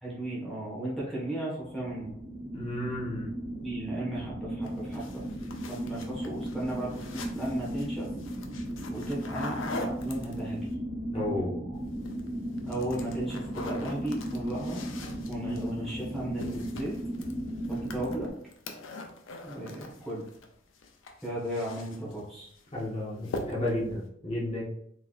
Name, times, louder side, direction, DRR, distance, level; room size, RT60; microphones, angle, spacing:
voice 1, 0.0-2.2 3.6-5.2 5.7-8.1 8.9-10.6 12.7-14.9 15.3-16.9 17.7-18.3 19.4-20.3 21.2-22.5, right 1 dB, ahead, -7 dB, 1.1 m, -35 dB
sound 1, 1.6-18.3, equal, 30° right, 0.8 m, -36 dB
voice 2, 2.5-3.4 11.1-11.8 22.7-24.6, left 1 dB, 30° left, -6 dB, 1.1 m, -32 dB
sound 2, 4.6-10.7 11.8-12.3 12.6-20.5 20.7-22.2 22.6-22.9 23.2-23.8, left 2 dB, 90° left, 0.6 m, -43 dB
3.9 x 3.4 x 2.5 m, 0.68 s
head